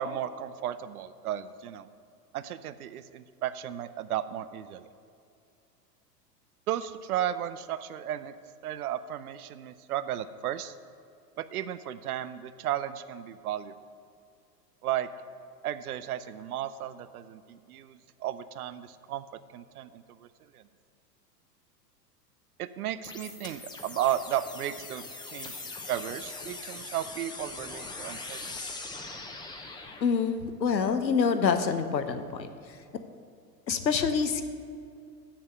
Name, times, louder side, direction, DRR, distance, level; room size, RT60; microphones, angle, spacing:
voice 1, 0.0-1.9 2.3-4.9 6.7-8.3 8.6-10.7 11.4-13.7 14.8-15.1 15.6-19.2 19.5-20.3 20.5-20.6 22.6-25.6 25.9-28.6, right 11 dB, 65° right, 14 dB, 0.6 m, -34 dB
sound 1, 23.0-30.0, left 3 dB, 10° left, 0.8 m, -41 dB
voice 2, 30.0-32.5 33.7-34.4, left 6 dB, 90° left, 9 dB, 0.9 m, -26 dB
7.2 x 7.1 x 7.6 m, 2.4 s
figure-of-eight pair, 100°, 50 cm